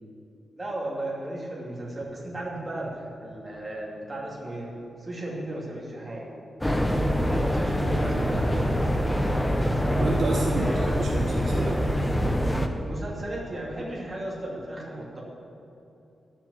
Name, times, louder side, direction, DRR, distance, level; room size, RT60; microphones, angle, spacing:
voice 1, 0.6-4.7 5.0-6.3 7.0-8.8 10.6-10.9 12.8-15.2, right 1 dB, 20° right, -4 dB, 2.7 m, -35 dB
sound 1, 2.0-5.9 6.5-6.6 7.1-9.0, equal, 30° left, 3.0 m, -49 dB
sound 2, 6.6-12.7, equal, 5° left, 0.8 m, -25 dB
voice 2, 8.0-8.4 9.9-11.8, right 2 dB, 55° right, 0 dB, 1.1 m, -30 dB
11.5 x 7.4 x 8.2 m, 3.0 s
wide cardioid pair, 165°, 0 cm